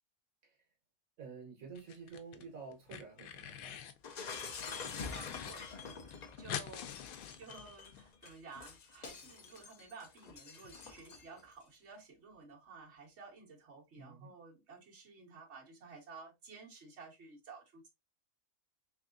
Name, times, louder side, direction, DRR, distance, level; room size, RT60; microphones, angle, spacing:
voice 1, 1.2-3.8 14.0-14.3, right 5 dB, 75° right, 1.5 m, -50 dB
sound 1, 1.8-2.4 2.7-4.0 4.4-5.5 5.8-5.9 6.1-8.0, left 9 dB, 85° left, 1.0 m, -45 dB
Shatter, 4.0-11.4, left 5 dB, 60° left, 0.4 m, -46 dB
voice 2, 4.5-7.1 7.4-17.9, right 4 dB, 55° right, 1.5 m, -54 dB
3.6 x 3.4 x 2.4 m
omnidirectional pair, 1.4 m